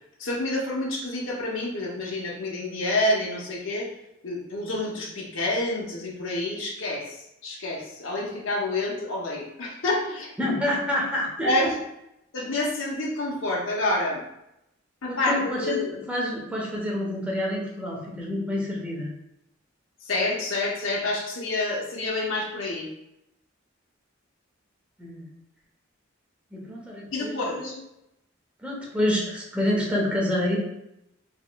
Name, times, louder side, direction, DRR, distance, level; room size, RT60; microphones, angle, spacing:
voice 1, 0.2-3.9 4.2-10.3 11.4-11.8 12.3-14.2 15.0-16.0 20.0-22.9 27.1-27.8, left 2 dB, 70° left, -3 dB, 0.8 m, -28 dB
voice 2, 10.4-11.6 15.1-19.1 25.0-25.2 26.5-27.7 28.6-30.6, left 1 dB, 5° right, -3 dB, 0.8 m, -28 dB
4.3 x 2.9 x 2.2 m, 0.84 s
head